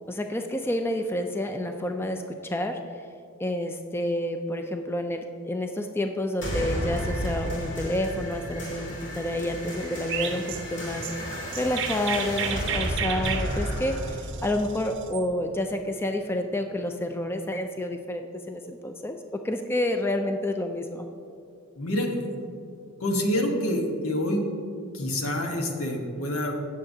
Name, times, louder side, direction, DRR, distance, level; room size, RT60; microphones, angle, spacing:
voice 1, 0.1-2.8 3.4-21.1, left 1 dB, 10° left, 5 dB, 0.3 m, -29 dB
sound 1, 6.4-15.4, equal, 55° left, 2.2 m, -33 dB
Chirp tweet, 10.1-15.2, right 8 dB, 55° right, 0.6 m, -33 dB
voice 2, 21.8-22.4 23.0-24.5 24.9-26.6, left 1 dB, 90° left, 2 dB, 1.2 m, -27 dB
16.0 x 6.6 x 2.7 m, 2.5 s
head